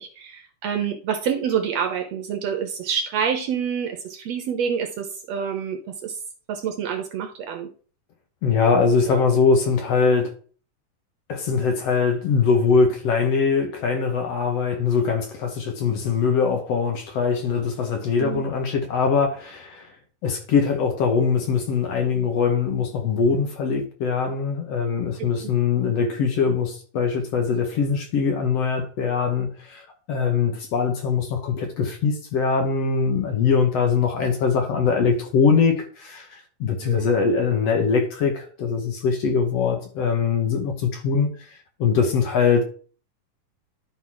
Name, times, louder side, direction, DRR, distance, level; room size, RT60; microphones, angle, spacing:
voice 1, 0.0-6.2 6.5-7.7 9.1-9.2 18.2-18.5 36.8-37.1, right 7 dB, 70° right, 1.8 m, -27 dB
voice 2, 8.4-10.3 11.3-19.9 20.2-42.6, left 5 dB, 60° left, 2.0 m, -22 dB
11.5 x 4.0 x 4.7 m
omnidirectional pair, 3.6 m